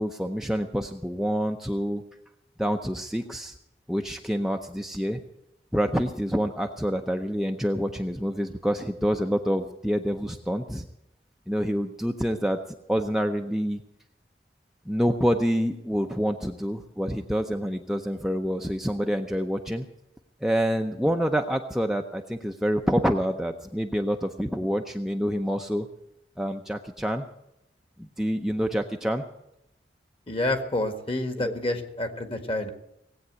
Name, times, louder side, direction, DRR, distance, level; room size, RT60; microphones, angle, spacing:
voice 1, 0.0-2.0 2.6-3.6 3.9-5.2 5.7-10.9 11.5-13.8 14.9-19.9 20.4-25.9 26.4-27.2 28.0-29.2 31.4-31.5, equal, ahead, 3 dB, 0.7 m, -27 dB
voice 2, 30.3-32.7, left 1 dB, 30° left, 7 dB, 1.7 m, -28 dB
18.5 x 8.7 x 8.1 m, 0.84 s
head